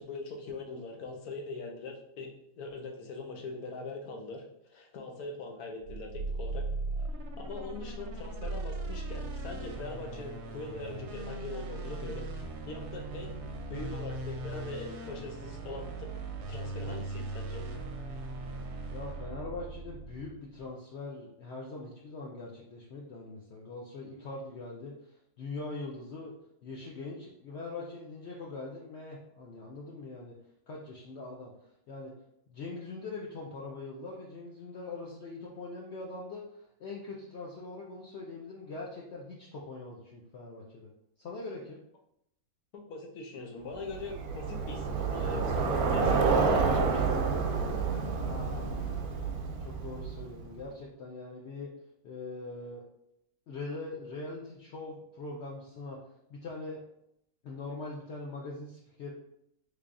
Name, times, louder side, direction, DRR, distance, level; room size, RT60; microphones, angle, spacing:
voice 1, 0.0-4.4 4.7-6.7 7.4-13.4 13.7-16.1 16.5-17.7 42.7-47.1, left 3 dB, 85° left, 1 dB, 1.2 m, -42 dB
sound 1, 5.8-20.4, right 2 dB, 65° right, 0.7 m, -38 dB
voice 2, 18.9-26.3 26.6-30.4 30.7-31.5 31.9-32.1 32.5-40.9 41.2-41.8 48.1-49.0 49.6-51.7 52.0-52.8 53.5-56.0 56.3-56.8 57.4-59.1, left 3 dB, 65° left, -3 dB, 0.7 m, -42 dB
Bicycle, 43.9-50.4, right 4 dB, 90° right, 1.1 m, -29 dB
3.4 x 3.3 x 2.5 m, 0.77 s
omnidirectional pair, 1.5 m